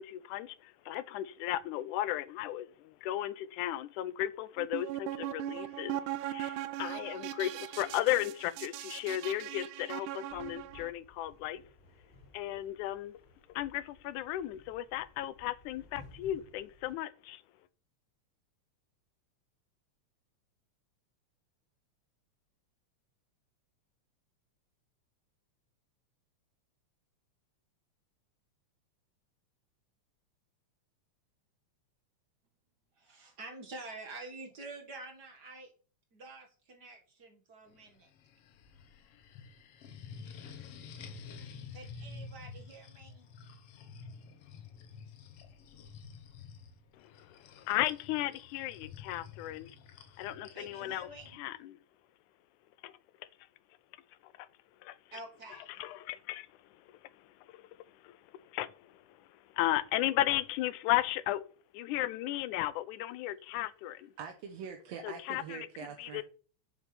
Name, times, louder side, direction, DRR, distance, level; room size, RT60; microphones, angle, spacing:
voice 1, 0.0-11.6 12.3-13.1 13.5-17.4 47.0-49.7 50.2-51.8 52.8-52.9 54.2-54.5 54.8-55.0 55.8-56.5 57.0-59.2 59.5-61.4 61.7-64.1 65.0-65.7 66.0-66.2, left 14 dB, 90° left, 2.1 m, -35 dB
sound 1, 4.6-10.9, right 13 dB, 85° right, 2.2 m, -39 dB
sound 2, 10.3-16.9, left 2 dB, 15° left, 3.8 m, -58 dB
voice 2, 33.0-35.7 36.1-38.1 41.7-43.3 50.5-51.4 55.1-55.8, right 2 dB, 35° right, 2.1 m, -48 dB
sound 3, 37.7-51.4, left 5 dB, 65° left, 1.6 m, -50 dB
voice 3, 64.2-66.2, right 7 dB, 70° right, 1.9 m, -44 dB
7.3 x 6.3 x 6.9 m
omnidirectional pair, 3.4 m